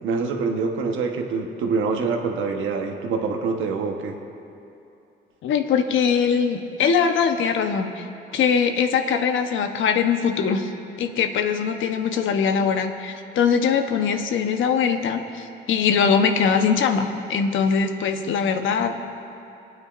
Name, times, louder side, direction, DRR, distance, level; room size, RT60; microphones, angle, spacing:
voice 1, 0.0-4.2, right 4 dB, 85° right, 3 dB, 1.2 m, -25 dB
voice 2, 5.4-8.1 8.3-10.7 11.0-19.0, left 6 dB, 75° left, 6 dB, 0.9 m, -22 dB
26.5 x 9.3 x 2.5 m, 2.7 s
cardioid pair, 90°, 20 cm